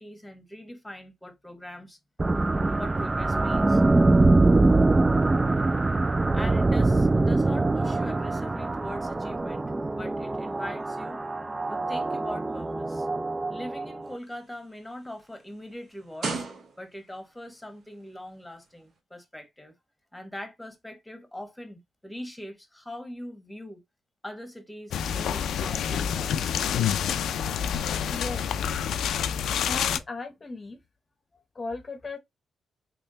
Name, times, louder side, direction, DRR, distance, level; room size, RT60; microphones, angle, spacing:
voice 1, 0.0-2.0 2.8-3.8 6.3-9.6 9.9-11.2 11.7-13.1 13.5-16.5 16.8-19.7 20.1-23.8 24.2-26.4, left 1 dB, 10° left, 1.2 m, -41 dB
sound 1, 2.2-14.2, right 2 dB, 25° right, 0.3 m, -23 dB
sound 2, 14.0-17.2 18.0-18.2, right 4 dB, 65° right, 1.0 m, -37 dB
sound 3, 24.9-30.0, left 8 dB, 80° left, 0.3 m, -28 dB
voice 2, 28.1-28.5 29.5-30.8 31.3-32.2, left 3 dB, 35° left, 0.7 m, -37 dB
3.5 x 3.0 x 2.7 m
cardioid pair, 70°, 0 cm